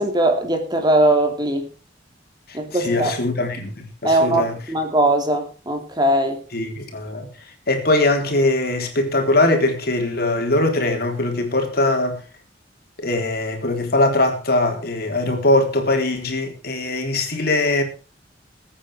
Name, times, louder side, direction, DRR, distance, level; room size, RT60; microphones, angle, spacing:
voice 1, 0.0-1.7 2.5-3.2 4.0-6.4, right 1 dB, 25° right, 2.9 m, -20 dB
voice 2, 2.5-4.6 6.5-12.2 13.0-17.8, left 2 dB, 55° left, 3.7 m, -21 dB
21.0 x 9.2 x 4.8 m
head